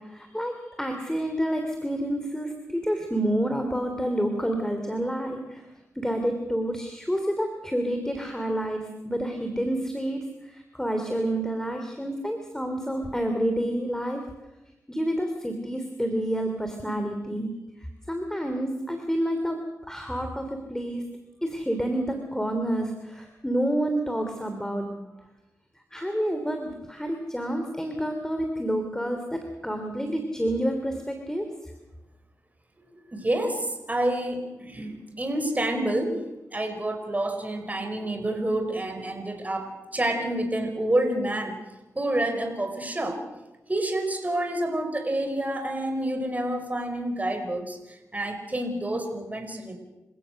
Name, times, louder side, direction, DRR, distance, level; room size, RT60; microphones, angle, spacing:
voice 1, 0.0-5.7 5.9-14.2 14.9-19.6 19.9-21.0 21.4-25.0 25.9-31.7, right 1 dB, 10° left, 5 dB, 3.1 m, -29 dB
voice 2, 32.9-41.6 42.0-43.2 43.7-49.8, right 1 dB, 25° right, 5 dB, 5.4 m, -28 dB
28.0 x 16.5 x 6.5 m, 1.0 s
cardioid pair, 55°, 6 cm